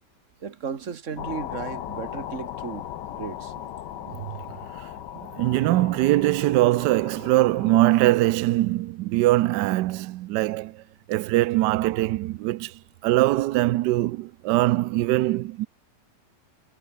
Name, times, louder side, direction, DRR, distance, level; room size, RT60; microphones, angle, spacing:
voice 1, 0.4-3.5, right 6 dB, 45° right, 2.2 m, -35 dB
sound 1, 1.2-8.0, left 11 dB, 75° left, 1.6 m, -38 dB
voice 2, 5.4-10.8 11.1-15.7, right 17 dB, 80° right, 1.2 m, -22 dB
omnidirectional pair, 1.9 m